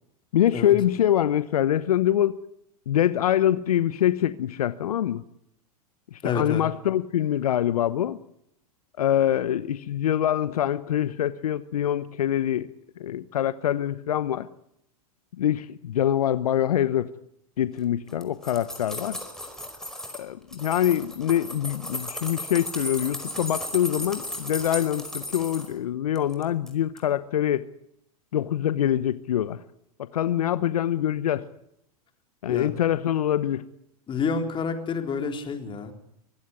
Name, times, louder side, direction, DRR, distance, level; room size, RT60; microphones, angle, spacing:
voice 1, 0.3-2.4 2.9-5.2 6.1-8.2 9.0-12.7 13.0-14.5 15.4-17.1 17.6-19.2 20.1-27.6 28.3-29.6 30.1-31.5 32.4-33.6, left 11 dB, 75° left, 15 dB, 0.9 m, -24 dB
voice 2, 6.2-6.6 32.5-32.7 34.1-35.9, left 5 dB, 25° left, 5 dB, 4.1 m, -28 dB
sound 1, 18.1-20.2 20.5-25.7 26.2-26.7 27.0-27.1, left 1 dB, 5° left, 5.0 m, -35 dB
24.5 x 16.0 x 9.8 m, 0.76 s
hypercardioid pair, 105°, 19 cm